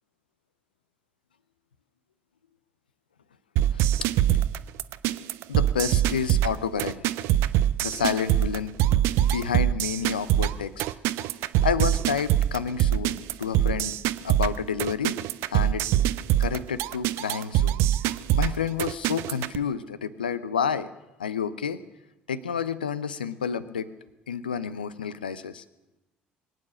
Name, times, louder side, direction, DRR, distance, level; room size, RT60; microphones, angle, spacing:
sound 1, 3.6-19.6, right 12 dB, 65° right, 0.5 m, -24 dB
voice 1, 5.5-7.0 7.8-8.7 9.3-10.8 11.6-14.0 14.2-15.2 15.5-15.8 16.4-17.8 18.4-20.9 21.2-21.8 22.3-23.9 24.3-25.6, left 7 dB, 85° left, 15 dB, 0.6 m, -29 dB
22.5 x 9.1 x 6.3 m, 0.99 s
figure-of-eight pair, 55°, 5 cm